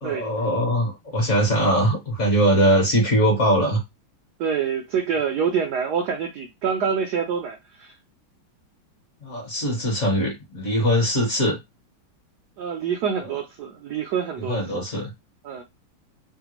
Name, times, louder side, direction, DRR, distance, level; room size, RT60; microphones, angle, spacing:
voice 1, 0.0-3.8 9.2-11.6 14.5-15.1, equal, 45° left, 1.1 m, -21 dB
voice 2, 4.4-7.9 12.6-14.8 15.4-15.6, right 7 dB, 80° right, 0.9 m, -26 dB
3.3 x 2.2 x 2.9 m
omnidirectional pair, 2.2 m